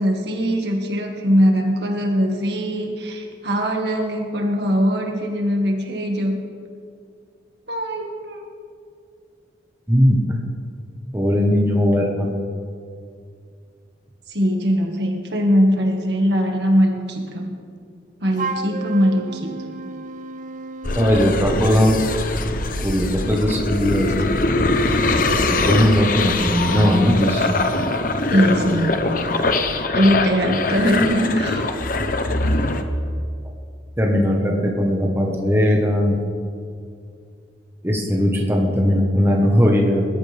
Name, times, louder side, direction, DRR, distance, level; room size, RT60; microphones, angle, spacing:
voice 1, 0.0-6.3 7.7-8.4 14.3-17.5 18.2-19.5 28.3-29.0 29.9-31.7, equal, 70° right, 1 dB, 1.9 m, -21 dB
voice 2, 9.9-10.4 11.1-12.4 20.9-22.0 22.8-24.1 25.3-27.6 34.0-36.2 37.8-40.1, equal, 15° right, -1 dB, 1.3 m, -18 dB
Wind instrument woodwind instrument, 18.3-21.2, right 4 dB, 45° right, 0.5 m, -32 dB
sound 1, 20.8-32.8, left 2 dB, 50° left, 0.9 m, -22 dB
21.0 x 13.5 x 3.5 m, 2.3 s
head